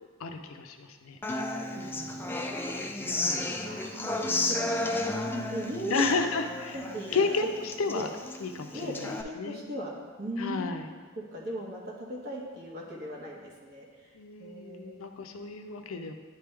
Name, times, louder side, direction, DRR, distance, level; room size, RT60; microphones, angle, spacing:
voice 1, 0.2-1.2 3.0-3.6 5.9-6.8 7.1-8.1 8.4-9.6 10.4-10.9 14.1-16.1, left 4 dB, 85° left, 6 dB, 0.5 m, -32 dB
Human voice / Acoustic guitar, 1.2-9.2, left 2 dB, 10° left, 0.4 m, -33 dB
voice 2, 1.7-2.3 3.6-6.5 6.7-7.2 7.9-8.1 8.7-9.9 10.2-10.8 11.2-15.0, equal, 55° right, -3 dB, 1.2 m, -39 dB
9.6 x 3.4 x 3.4 m, 1.5 s
head